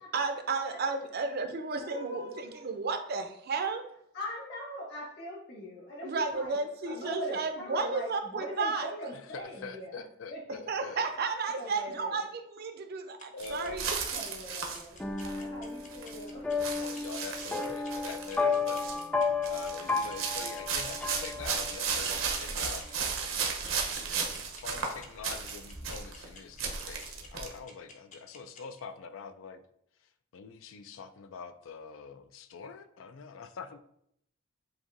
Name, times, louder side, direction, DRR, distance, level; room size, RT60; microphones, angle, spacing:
voice 1, 0.1-3.8 6.0-8.9 10.7-14.0, right 4 dB, 50° right, 7 dB, 0.5 m, -33 dB
voice 2, 1.7-2.7 4.1-6.6 6.8-10.0 10.3-10.6 11.6-12.3 14.1-16.5, equal, 55° left, -3 dB, 1.6 m, -41 dB
voice 3, 9.3-11.1 13.3-13.8 16.6-18.9 19.5-29.6 30.3-33.8, left 5 dB, 80° left, 10 dB, 0.4 m, -44 dB
sound 1, 13.2-28.8, left 4 dB, 40° left, 0.6 m, -51 dB
sound 2, 13.4-15.4 15.8-16.2 16.6-18.4 18.7-19.1 19.4-26.3 26.6-27.5, right 5 dB, 80° right, 0.8 m, -35 dB
sound 3, 15.0-22.0, left 4 dB, 5° left, 0.3 m, -33 dB
7.6 x 2.7 x 2.5 m, 0.72 s
head